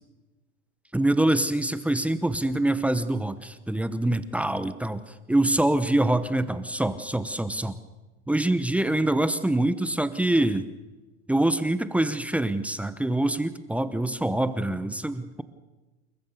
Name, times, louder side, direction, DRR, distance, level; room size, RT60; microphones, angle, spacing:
voice 1, 0.9-7.8 8.3-10.7 11.3-15.4, right 1 dB, 5° right, 12 dB, 0.9 m, -25 dB
29.0 x 14.5 x 6.8 m, 1.2 s
hypercardioid pair, 120°, 35 cm